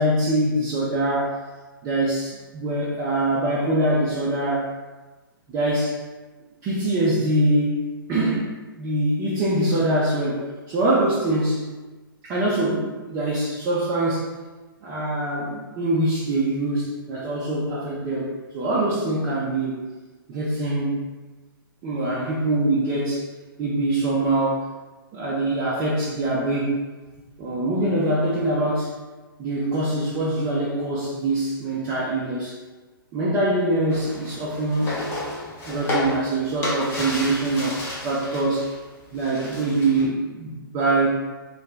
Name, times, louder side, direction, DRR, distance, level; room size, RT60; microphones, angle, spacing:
voice 1, 0.0-1.4 1.8-4.7 5.5-6.0 6.6-11.7 12.2-14.3 14.8-19.8 20.3-21.0 21.8-23.3 23.6-24.7 25.1-26.8 27.4-28.9 29.4-32.6 33.1-35.0 35.7-38.7 39.1-41.1, right 1 dB, 25° right, -7 dB, 0.5 m, -24 dB
sound 1, 33.9-38.7 39.0-40.0, left 1 dB, 20° left, 0.7 m, -31 dB
2.7 x 2.3 x 3.3 m, 1.3 s
figure-of-eight pair, 125°, 12 cm